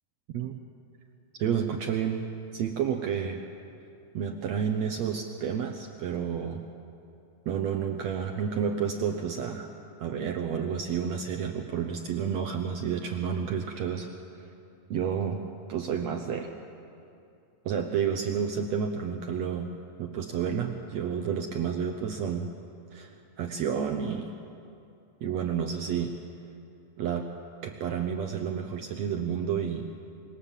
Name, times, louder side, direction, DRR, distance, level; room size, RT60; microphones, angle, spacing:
voice 1, 0.3-0.6 1.4-2.2 2.5-3.4 4.1-6.6 7.4-9.7 10.0-14.1 14.9-15.4 15.7-16.5 17.6-19.7 20.0-22.5 22.9-24.3 25.2-26.2 27.0-27.3 27.6-29.9, right 7 dB, 80° right, 5 dB, 1.5 m, -30 dB
25.5 x 23.0 x 7.4 m, 2.6 s
omnidirectional pair, 4.4 m